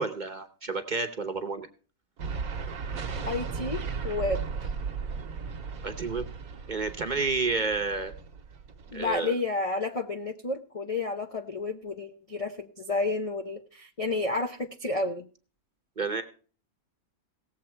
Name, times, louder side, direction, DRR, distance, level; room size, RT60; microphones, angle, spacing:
voice 1, 0.0-1.7 5.8-6.3 6.7-8.1 8.9-9.3 16.0-16.2, right 4 dB, 35° right, 7 dB, 0.9 m, -30 dB
sound 1, 2.2-9.2, right 5 dB, 70° right, 1.4 m, -36 dB
voice 2, 3.3-4.7 8.9-15.3, left 3 dB, 40° left, 5 dB, 0.5 m, -31 dB
17.5 x 7.4 x 4.4 m, 0.40 s
omnidirectional pair, 1.6 m